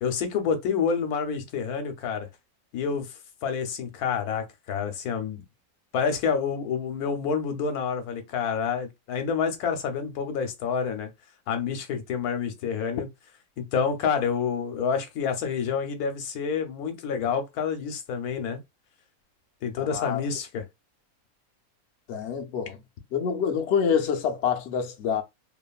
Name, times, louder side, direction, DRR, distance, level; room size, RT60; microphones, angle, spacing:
voice 1, 0.0-2.3 2.7-3.1 3.4-5.4 5.9-11.1 11.5-13.1 13.6-18.6 19.6-20.6, left 6 dB, 80° left, 1.2 m, -28 dB
voice 2, 19.8-20.2 22.1-22.8 23.1-25.2, left 7 dB, 60° left, 0.8 m, -26 dB
2.8 x 2.5 x 2.3 m
omnidirectional pair, 1.5 m